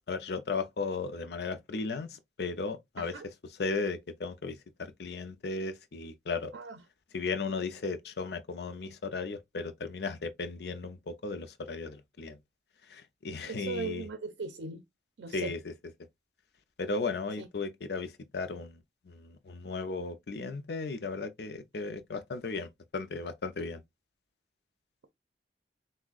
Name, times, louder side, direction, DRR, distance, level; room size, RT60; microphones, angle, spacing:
voice 1, 0.1-3.1 3.6-6.5 7.1-12.4 12.9-14.0 15.3-15.7 16.8-18.8 19.1-23.8, left 4 dB, 70° left, 0.5 m, -35 dB
voice 2, 3.0-3.3 6.5-6.8 13.5-14.8 15.2-15.5 17.4-17.5, right 4 dB, 85° right, 0.5 m, -38 dB
5.9 x 2.1 x 2.4 m
head